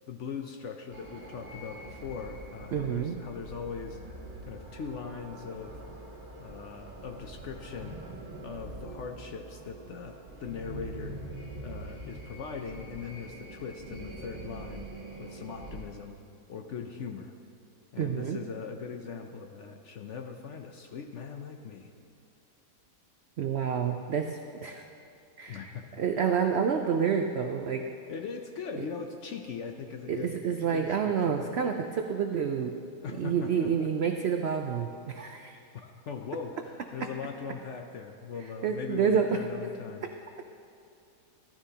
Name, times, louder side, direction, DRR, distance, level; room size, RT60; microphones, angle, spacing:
voice 1, 0.1-4.0 4.5-5.8 6.4-8.0 8.4-11.2 11.6-14.9 15.2-16.2 16.5-17.3 17.9-21.9 25.5-25.8 28.1-30.4 30.6-31.6 33.0-33.9 35.7-36.6 36.9-40.0, left 6 dB, 65° left, 4 dB, 0.8 m, -40 dB
sound 1, 0.9-15.8, right 2 dB, 30° right, 1.6 m, -44 dB
voice 2, 2.7-3.2 18.0-18.4 23.4-24.8 25.4-27.9 28.8-28.9 30.1-32.7 33.1-35.6 38.6-39.4 40.0-40.1, right 7 dB, 80° right, 5 dB, 0.5 m, -29 dB
14.0 x 13.0 x 2.8 m, 2.6 s
omnidirectional pair, 1.7 m